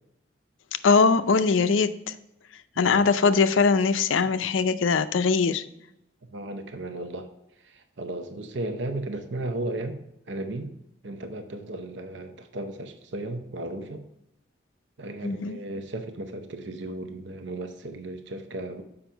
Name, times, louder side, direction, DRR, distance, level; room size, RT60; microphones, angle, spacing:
voice 1, 0.8-2.1 2.8-5.6 15.2-15.6, left 5 dB, 90° left, 12 dB, 0.5 m, -21 dB
voice 2, 2.8-3.1 6.3-7.3 7.6-10.0 10.3-10.7 11.0-14.0 15.0-18.8, right 2 dB, 70° right, 7 dB, 0.7 m, -35 dB
7.1 x 5.2 x 4.4 m, 0.87 s
head